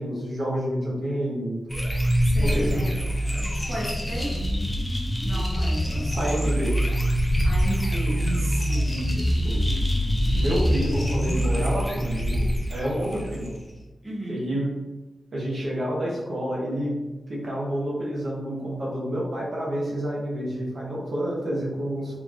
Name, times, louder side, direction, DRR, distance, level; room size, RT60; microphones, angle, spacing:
voice 1, 0.0-1.6 2.4-2.9 6.2-6.8 8.9-9.6 10.3-13.6 14.3-14.8 15.3-17.0 17.3-22.2, equal, 50° right, -5 dB, 0.9 m, -29 dB
sound 1, 1.7-13.7, equal, 10° left, 0.5 m, -24 dB
voice 2, 2.2-4.4 5.2-6.4 7.4-8.9 14.0-14.5, right 1 dB, 20° right, -6 dB, 0.8 m, -34 dB
3.8 x 3.1 x 2.4 m, 1.1 s
wide cardioid pair, 165°, 0 cm